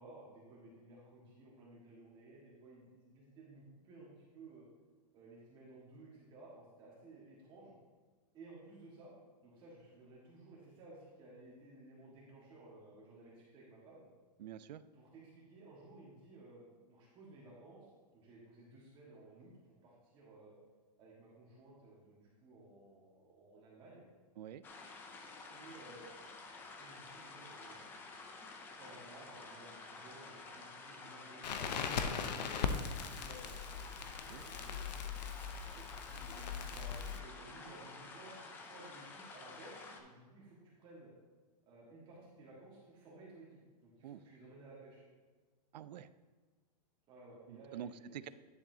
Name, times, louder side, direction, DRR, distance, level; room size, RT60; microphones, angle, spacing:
voice 1, 0.0-4.6 5.1-7.8 8.3-9.1 9.4-14.0 14.9-19.5 19.8-20.6 21.0-24.0 25.5-26.1 26.8-27.9 28.8-34.8 35.7-41.1 41.7-45.0 47.1-48.2, right 2 dB, 25° right, -6 dB, 1.5 m, -56 dB
voice 2, 14.4-14.8 24.4-24.6 34.0-34.4 44.0-44.2 45.7-46.1 47.5-48.3, right 10 dB, 90° right, 15 dB, 0.5 m, -47 dB
sound 1, 24.6-40.0, left 3 dB, 10° left, 0.4 m, -51 dB
Crackle, 31.4-37.2, left 6 dB, 85° left, 0.8 m, -39 dB
10.5 x 6.8 x 2.7 m, 1.4 s
supercardioid pair, 165°, 21 cm